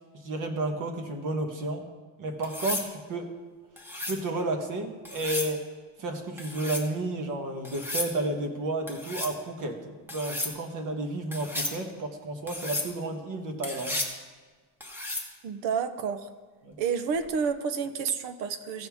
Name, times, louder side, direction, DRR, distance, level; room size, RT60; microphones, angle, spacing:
voice 1, 0.2-1.8 2.2-3.3 4.1-5.6 6.0-14.0 16.6-16.8, right 2 dB, 45° right, 5 dB, 1.3 m, -32 dB
sound 1, 2.4-2.9 3.8-4.2 5.1-5.5 6.4-6.9 7.7-8.1 8.9-9.4 10.1-10.5 11.3-11.8 12.5-12.9 13.6-14.2 14.8-15.3 17.2-17.5, left 2 dB, 5° right, 1.1 m, -33 dB
voice 2, 15.4-16.3 16.8-18.9, right 6 dB, 80° right, 11 dB, 0.9 m, -30 dB
16.0 x 6.8 x 3.5 m, 1.4 s
cardioid pair, 165°, 43 cm